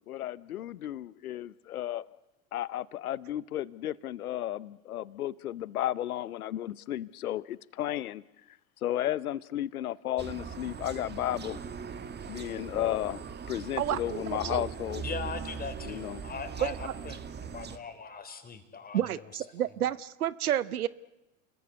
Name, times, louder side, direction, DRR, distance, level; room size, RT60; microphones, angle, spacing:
voice 1, 0.0-2.1 2.5-8.2 8.8-11.6 12.3-13.2 13.5-15.1 15.8-16.2, left 12 dB, 80° left, 0.9 m, -33 dB
sound 1, 10.2-17.8, right 6 dB, 25° right, 1.8 m, -40 dB
voice 2, 13.8-14.7 16.6-16.9 18.9-20.9, right 11 dB, 80° right, 0.9 m, -30 dB
voice 3, 15.0-19.4, left 5 dB, 20° left, 4.2 m, -40 dB
30.0 x 21.0 x 8.3 m
hypercardioid pair, 85°, 43 cm